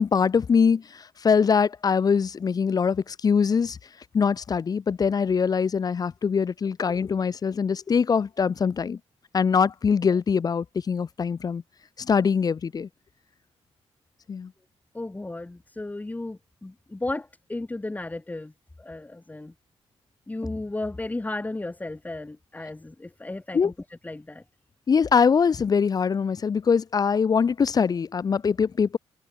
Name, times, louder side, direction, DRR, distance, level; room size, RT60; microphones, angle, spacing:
voice 1, 0.0-3.8 4.1-9.0 9.3-11.6 12.0-12.9 14.3-14.5 23.5-23.7 24.9-29.0, left 6 dB, 35° left, 0.5 m, -23 dB
voice 2, 14.9-18.5 18.8-19.5 20.3-23.7 24.0-24.4, left 2 dB, 15° left, 1.7 m, -34 dB
cardioid pair, 95°, 11 cm